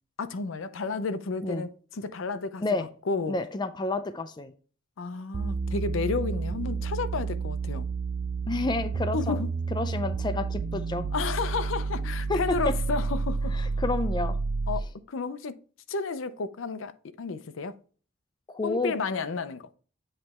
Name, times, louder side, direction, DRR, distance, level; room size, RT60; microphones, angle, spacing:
voice 1, 0.2-2.6 3.1-3.4 5.0-7.9 9.1-9.5 11.1-13.5 14.7-15.5 15.9-16.9 17.2-17.7 18.6-19.6, left 4 dB, 70° left, 0.5 m, -32 dB
voice 2, 3.3-4.5 8.5-9.4 9.7-11.1 12.3-12.7 13.5-14.4 18.5-18.9, left 2 dB, 20° left, 0.4 m, -30 dB
sound 1, 5.3-14.9, right 4 dB, 45° right, 0.4 m, -30 dB
8.0 x 3.2 x 4.1 m
head